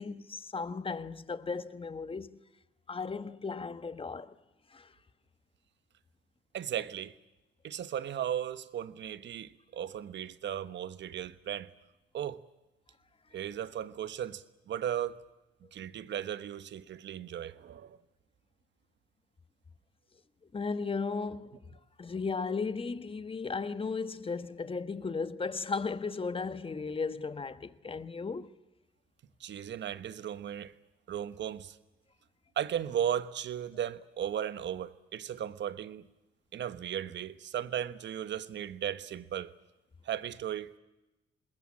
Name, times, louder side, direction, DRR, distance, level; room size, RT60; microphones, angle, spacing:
voice 1, 0.0-2.4 2.9-4.3 4.7-4.9 20.5-21.6 22.0-28.5, left 4 dB, 25° left, 1.3 m, -35 dB
voice 2, 6.5-7.2 7.6-11.7 12.1-12.4 13.3-15.2 15.7-18.0 29.4-30.7 31.1-31.8 32.6-36.1 36.5-39.5 40.0-40.7, right 10 dB, 65° right, 1.3 m, -36 dB
26.5 x 21.0 x 8.6 m
cardioid pair, 90°, 20 cm